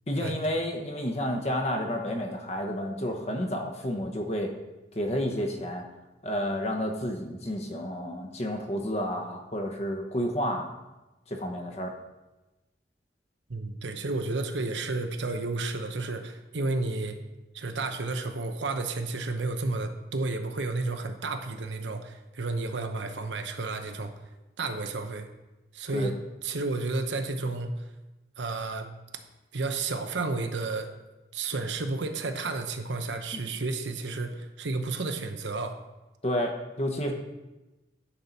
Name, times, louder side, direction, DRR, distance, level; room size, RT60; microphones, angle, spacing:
voice 1, 0.1-4.5 4.9-5.9 6.2-10.8 11.3-11.9 25.9-26.1 36.2-37.1, equal, 35° left, 2 dB, 1.0 m, -30 dB
voice 2, 13.5-17.2 17.5-24.1 24.6-25.3 25.7-26.1 26.4-27.7 28.4-28.9 29.5-30.9 31.3-35.8, right 3 dB, 80° right, 7 dB, 0.8 m, -31 dB
10.0 x 4.4 x 5.3 m, 1.1 s
head